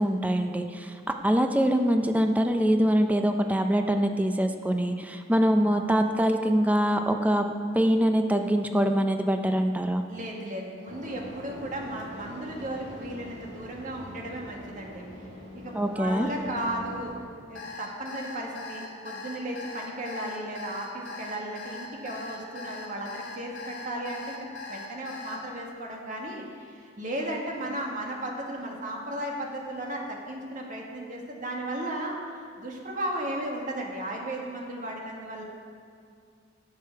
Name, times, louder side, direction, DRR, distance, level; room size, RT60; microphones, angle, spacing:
voice 1, 0.0-7.4 7.7-10.0 15.7-16.3, equal, 10° right, 5 dB, 0.5 m, -24 dB
voice 2, 10.1-15.0 15.5-17.1 17.5-32.2 32.6-35.4, right 1 dB, 45° right, 0 dB, 1.7 m, -35 dB
sound 1, 10.9-17.1, equal, 65° right, 2.1 m, -43 dB
Alarm, 17.5-25.4, left 3 dB, 85° left, 1.8 m, -40 dB
17.0 x 6.8 x 4.6 m, 2.2 s
head